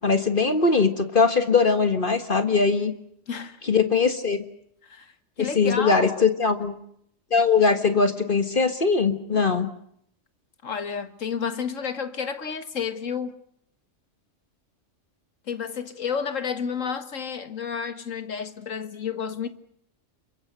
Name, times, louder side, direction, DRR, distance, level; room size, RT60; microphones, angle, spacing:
voice 1, 0.0-2.9 3.6-4.4 5.4-6.8 7.3-9.7, left 4 dB, 45° left, 1.7 m, -21 dB
voice 2, 3.3-3.6 4.8-5.1 5.4-6.3 10.6-13.4 15.5-19.5, left 6 dB, 85° left, 2.0 m, -31 dB
28.0 x 24.0 x 6.7 m
omnidirectional pair, 1.3 m